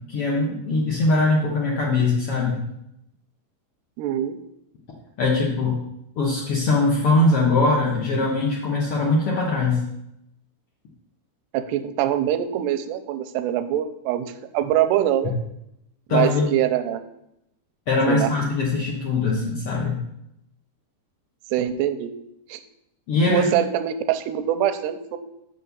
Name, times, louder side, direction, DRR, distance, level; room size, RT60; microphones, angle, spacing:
voice 1, 0.0-2.6 5.2-5.7 6.1-9.8 16.1-16.5 17.9-20.0 23.1-23.5, left 3 dB, 80° left, -3 dB, 1.3 m, -21 dB
voice 2, 4.0-4.4 11.5-14.3 14.5-15.3 16.1-17.0 18.1-18.3 21.5-22.1 22.5-22.6 23.3-25.2, right 11 dB, 85° right, 10 dB, 2.7 m, -23 dB
6.7 x 6.5 x 6.9 m, 0.81 s
omnidirectional pair, 4.8 m